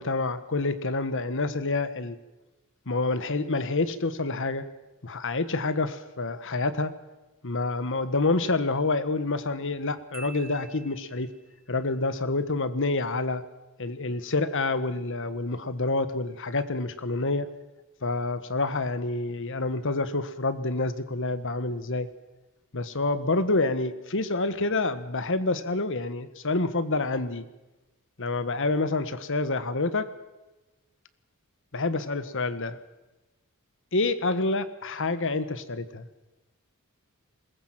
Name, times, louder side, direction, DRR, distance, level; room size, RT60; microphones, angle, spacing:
voice 1, 0.0-2.2 2.9-4.6 5.0-6.9 7.4-11.3 11.7-13.4 13.8-17.5 18.0-22.1 22.7-27.5 28.2-30.1 31.7-32.8 33.9-36.1, left 3 dB, 60° left, 12 dB, 1.4 m, -28 dB
Marimba xylophone, 10.1-11.6, right 4 dB, 45° right, 2.9 m, -47 dB
21.5 x 19.5 x 7.6 m, 1.1 s
head